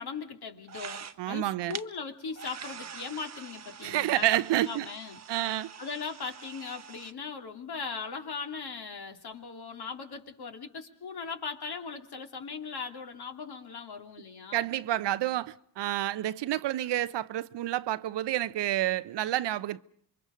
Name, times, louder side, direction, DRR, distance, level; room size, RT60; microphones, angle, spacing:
voice 1, 0.0-4.3 4.6-5.2 5.8-14.7, left 5 dB, 50° left, 2.9 m, -39 dB
sound 1, 0.6-1.4 1.7-1.8 2.3-7.1, right 7 dB, 35° right, 1.2 m, -45 dB
voice 2, 1.2-1.8 3.8-4.9 5.3-5.7 14.5-19.8, right 13 dB, 55° right, 0.8 m, -29 dB
27.5 x 23.0 x 5.1 m
supercardioid pair, 60°, 49 cm